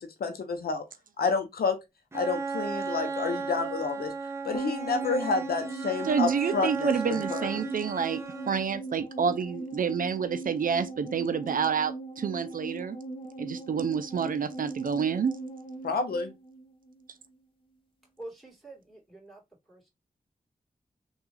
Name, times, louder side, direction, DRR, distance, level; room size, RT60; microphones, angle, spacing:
voice 1, 0.2-0.8 1.2-1.8 2.1-4.1 4.4-7.6 15.8-16.3, left 4 dB, 85° left, 0.6 m, -29 dB
Bowed string instrument, 2.1-8.8, right 4 dB, 15° right, 0.8 m, -35 dB
sound 1, 4.5-17.1 17.3-17.4, right 2 dB, 35° left, 1.1 m, -40 dB
voice 2, 6.0-8.2 8.5-13.0 13.4-15.4, right 6 dB, 65° right, 0.4 m, -28 dB
voice 3, 18.2-19.4 19.7-19.9, right 2 dB, ahead, 2.3 m, -46 dB
3.5 x 2.3 x 3.1 m
cardioid pair, 50°, 15 cm